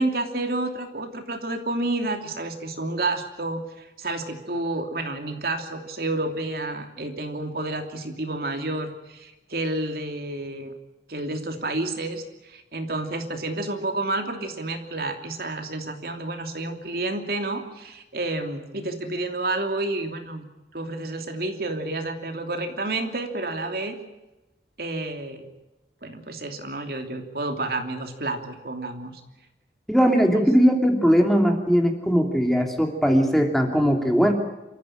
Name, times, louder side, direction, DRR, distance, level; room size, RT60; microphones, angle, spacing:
voice 1, 0.0-10.7 11.1-20.4 20.7-24.0 24.8-25.5 26.0-29.2 30.3-30.5, right 2 dB, 55° right, 5 dB, 3.0 m, -30 dB
voice 2, 29.9-34.3, equal, ahead, 3 dB, 2.9 m, -19 dB
27.5 x 14.5 x 8.9 m, 1.0 s
head